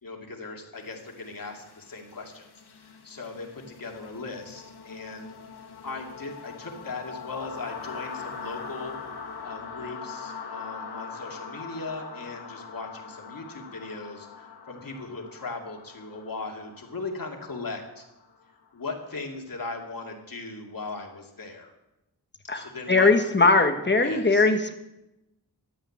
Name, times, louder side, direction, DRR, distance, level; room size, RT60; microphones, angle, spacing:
voice 1, 0.0-2.5 2.8-5.3 5.8-8.9 9.4-18.0 18.7-21.7 22.4-23.3 24.0-24.5, left 3 dB, 60° left, 2 dB, 2.6 m, -38 dB
sound 1, 0.9-18.7, left 5 dB, 75° left, 1.7 m, -42 dB
voice 2, 22.5-24.7, left 3 dB, 25° left, 6 dB, 1.4 m, -20 dB
13.0 x 8.8 x 8.6 m, 0.93 s
wide cardioid pair, 105°, 39 cm